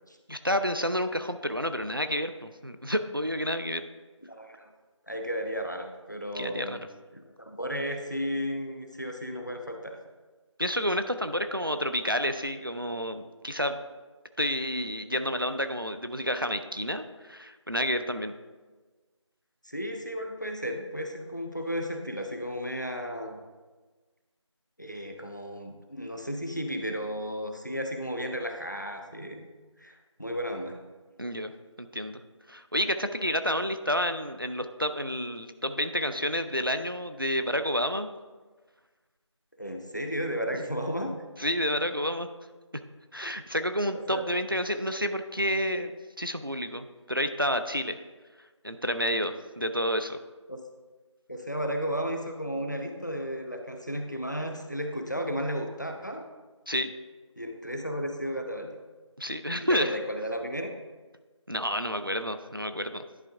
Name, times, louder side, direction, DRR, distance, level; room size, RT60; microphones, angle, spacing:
voice 1, 0.3-3.8 6.4-6.9 10.6-13.8 14.4-18.3 31.2-31.5 31.8-32.2 32.5-38.1 40.6-40.7 41.4-42.3 43.1-45.9 46.2-48.0 48.6-50.2 56.7-56.9 59.2-59.9 61.5-63.0, equal, 45° right, 9 dB, 0.4 m, -29 dB
voice 2, 4.2-4.7 5.1-6.8 7.1-10.0 19.6-23.4 24.8-29.5 29.8-30.8 39.6-41.2 43.9-44.3 50.5-50.6 51.3-56.3 57.4-58.8 59.7-60.7, equal, 35° left, 4 dB, 0.6 m, -34 dB
10.5 x 4.4 x 3.5 m, 1.3 s
figure-of-eight pair, 180°, 16 cm